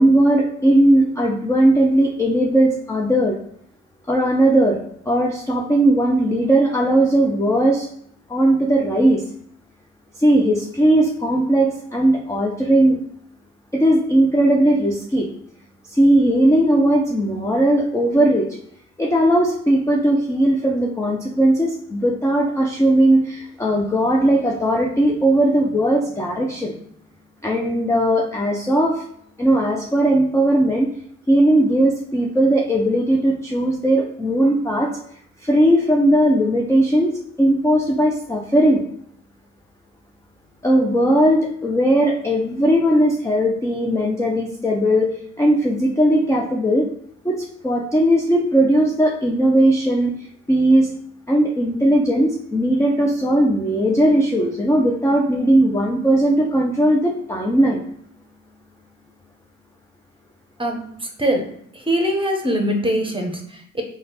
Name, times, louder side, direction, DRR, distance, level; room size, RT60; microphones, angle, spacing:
voice 1, 0.0-3.4 4.1-4.8 5.1-7.9 8.3-9.2 10.2-13.0 13.7-15.3 15.9-18.5 19.0-26.7 27.4-29.0 29.4-30.9 31.3-35.0 35.4-38.8 40.6-45.1 45.4-46.9 47.2-50.1 50.5-50.9 51.3-57.8, right 1 dB, 10° left, -1 dB, 0.5 m, -18 dB
voice 2, 60.6-61.5 61.7-63.8, equal, 15° right, 3 dB, 1.0 m, -23 dB
3.2 x 2.3 x 4.2 m, 0.68 s
hypercardioid pair, 45°, 37 cm